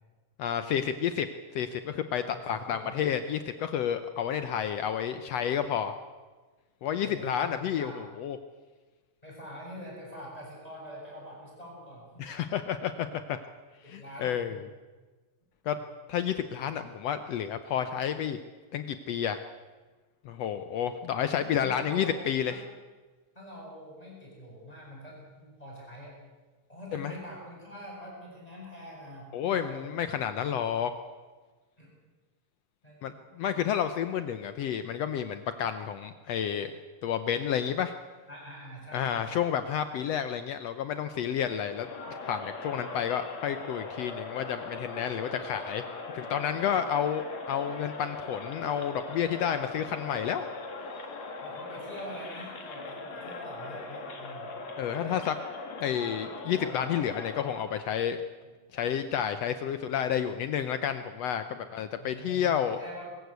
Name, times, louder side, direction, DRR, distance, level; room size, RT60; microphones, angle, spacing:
voice 1, 0.4-1.3 1.5-5.9 6.8-8.4 12.2-13.4 13.9-14.5 15.7-15.8 16.1-18.4 18.7-19.4 20.2-22.6 26.9-27.1 29.3-30.9 33.0-36.7 37.0-37.9 38.9-45.8 46.1-50.5 54.8-55.4 55.8-58.2 58.7-62.8, left 9 dB, 75° left, 10 dB, 1.5 m, -30 dB
voice 2, 2.3-3.0 5.6-5.7 7.0-7.5 7.8-8.0 9.2-12.3 13.8-14.5 21.6-22.2 22.5-22.6 23.3-26.2 26.7-29.9 31.8-31.9 32.8-33.2 38.3-39.5 46.7-46.9 51.4-54.6 61.6-63.1, equal, 10° left, -4 dB, 7.4 m, -45 dB
Crowd, 41.6-57.9, left 3 dB, 55° left, 3.2 m, -40 dB
23.0 x 14.5 x 8.2 m, 1.3 s
omnidirectional pair, 3.8 m